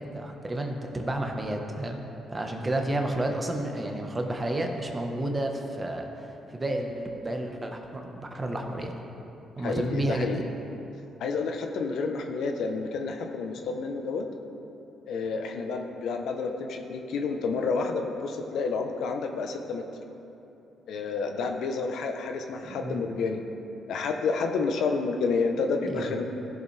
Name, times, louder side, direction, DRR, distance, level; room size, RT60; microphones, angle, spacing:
voice 1, 0.1-9.0 9.6-10.5 22.6-23.1 25.8-26.2, right 1 dB, 20° right, 2 dB, 1.2 m, -31 dB
voice 2, 9.6-10.4 11.2-14.2 15.1-19.8 20.9-23.4 23.9-26.2, left 4 dB, 75° left, 4 dB, 0.9 m, -29 dB
15.5 x 7.1 x 3.4 m, 2.9 s
cardioid pair, 90°, 0 cm